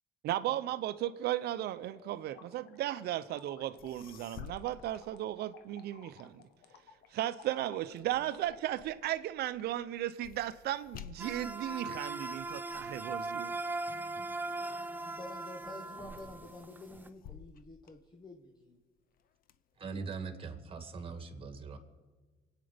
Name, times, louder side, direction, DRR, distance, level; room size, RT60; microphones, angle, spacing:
voice 1, 0.2-6.4 7.1-13.5, right 13 dB, 70° right, 0.8 m, -35 dB
sound 1, 1.7-8.7, left 7 dB, 80° left, 1.5 m, -57 dB
sound 2, 3.5-3.6 3.8-5.9 6.3-15.0 15.5-15.9 16.2-18.7 19.1-20.1, left 9 dB, 60° left, 0.7 m, -54 dB
sound 3, 11.2-17.1, right 2 dB, 10° right, 0.8 m, -39 dB
voice 2, 14.9-18.8, left 2 dB, 25° left, 1.2 m, -49 dB
voice 3, 19.8-21.8, right 4 dB, 35° right, 2.0 m, -41 dB
25.5 x 9.2 x 5.1 m
cardioid pair, 110°, 17 cm